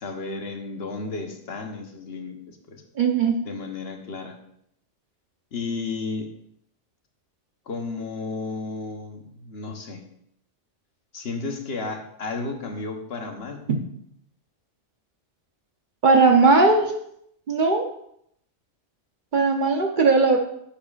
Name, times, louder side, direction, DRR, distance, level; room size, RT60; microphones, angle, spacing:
voice 1, 0.0-2.8 3.4-4.4 5.5-6.3 7.7-10.0 11.1-13.6, left 3 dB, 60° left, 4 dB, 1.2 m, -33 dB
voice 2, 3.0-3.4 13.7-13.8 16.0-16.9 17.5-17.9 19.3-20.4, right 3 dB, 45° right, 3 dB, 0.9 m, -18 dB
10.0 x 7.0 x 2.4 m, 0.72 s
omnidirectional pair, 1.2 m